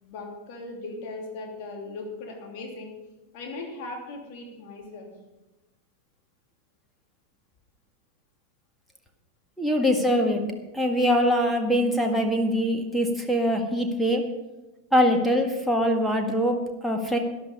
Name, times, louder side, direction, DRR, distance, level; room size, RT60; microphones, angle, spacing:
voice 1, 0.0-2.9 3.3-5.1, left 2 dB, 45° left, 0 dB, 3.0 m, -38 dB
voice 2, 9.6-10.4 10.7-14.2 14.9-17.2, equal, ahead, 2 dB, 1.9 m, -23 dB
12.5 x 11.5 x 5.3 m, 1.0 s
figure-of-eight pair, 90°, 0 cm